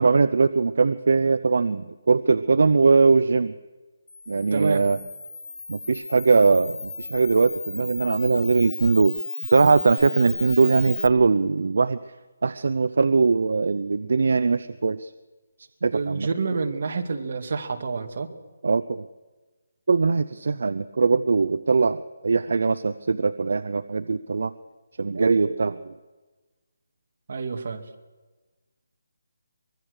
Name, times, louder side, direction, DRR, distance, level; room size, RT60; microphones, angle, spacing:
voice 1, 0.0-3.5 4.3-5.0 5.7-9.2 9.4-12.0 12.4-15.1 15.8-16.3 18.6-19.1 19.9-24.5 25.0-25.9, right 4 dB, 65° right, 13 dB, 0.7 m, -21 dB
Camera, 4.1-11.1, left 4 dB, 75° left, 2.3 m, -35 dB
voice 2, 4.5-4.8 15.9-18.3 27.3-27.8, right 4 dB, 50° right, 5 dB, 2.2 m, -28 dB
23.5 x 22.5 x 6.6 m, 1.3 s
hypercardioid pair, 170°, 0 cm